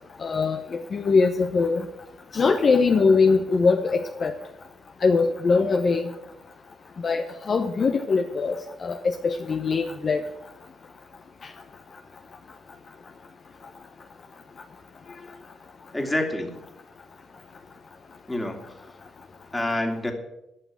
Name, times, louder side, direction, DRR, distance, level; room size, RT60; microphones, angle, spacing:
voice 1, 0.2-1.9 2.3-4.3 5.0-6.1 7.0-8.5 8.8-10.2, left 4 dB, 45° left, 5 dB, 0.9 m, -22 dB
voice 2, 15.9-16.6 18.3-19.0 19.5-20.1, left 1 dB, 10° left, 4 dB, 2.2 m, -28 dB
11.0 x 6.0 x 8.7 m, 0.88 s
cardioid pair, 90°, 0 cm